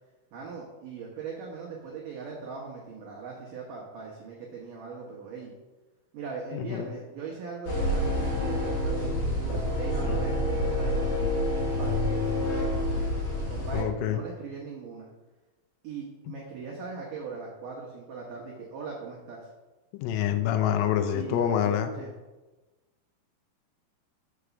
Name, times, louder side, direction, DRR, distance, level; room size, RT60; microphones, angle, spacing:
voice 1, 0.3-5.5 6.1-9.4 9.8-11.4 11.8-13.1 13.5-15.1 15.8-19.5 21.1-22.1, right 5 dB, 85° right, -3 dB, 1.8 m, -39 dB
voice 2, 6.5-6.9 10.0-10.4 13.7-14.2 20.0-21.9, left 10 dB, 90° left, 8 dB, 3.3 m, -27 dB
sound 1, 7.7-13.8, left 1 dB, 60° left, 3.7 m, -28 dB
7.7 x 4.9 x 6.8 m, 1.2 s
omnidirectional pair, 5.6 m